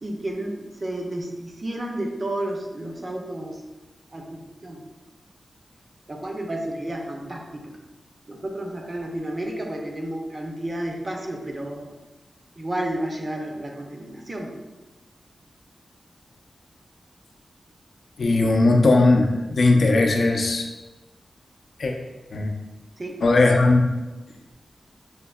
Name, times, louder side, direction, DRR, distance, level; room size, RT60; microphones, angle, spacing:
voice 1, 0.0-3.6 4.1-4.8 6.1-7.7 8.3-11.9 12.6-14.5 23.0-23.2, right 1 dB, 30° right, 1 dB, 0.5 m, -31 dB
voice 2, 18.2-20.7 21.8-21.9 22.3-22.5 23.2-23.9, left 2 dB, 60° left, 2 dB, 0.5 m, -18 dB
6.2 x 2.7 x 2.3 m, 1.1 s
wide cardioid pair, 175°, 0 cm